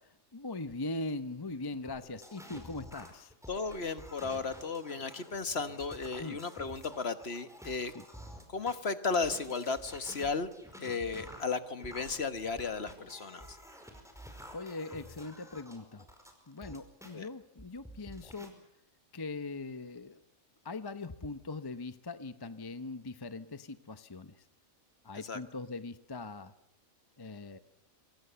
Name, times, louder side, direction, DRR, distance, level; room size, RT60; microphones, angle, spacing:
voice 1, 0.3-3.3 6.2-6.4 7.9-8.0 14.5-16.1 16.5-18.6 19.1-20.2 20.6-24.4 25.0-26.5 27.2-27.6, left 3 dB, 20° left, 12 dB, 0.8 m, -41 dB
sound 1, 1.9-8.8 9.2-17.1 17.6-18.5, equal, ahead, 5.0 m, -50 dB
voice 2, 3.5-7.9 8.5-10.5 10.8-13.6 17.1-17.3 25.2-25.4, left 4 dB, 50° left, 11 dB, 1.5 m, -35 dB
28.0 x 23.5 x 7.0 m, 0.80 s
omnidirectional pair, 1.4 m